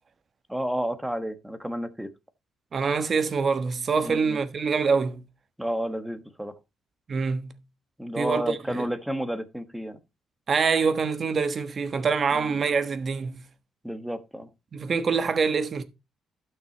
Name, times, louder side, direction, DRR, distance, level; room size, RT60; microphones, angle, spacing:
voice 1, 0.5-2.1 4.0-4.4 5.6-6.6 8.0-10.0 12.3-12.6 13.8-14.5, equal, 5° right, 1.3 m, -31 dB
voice 2, 2.7-5.2 7.1-7.6 8.2-8.9 10.5-13.4 14.7-15.8, right 5 dB, 45° right, 1.2 m, -25 dB
12.0 x 6.1 x 4.0 m
cardioid pair, 90°, 0 cm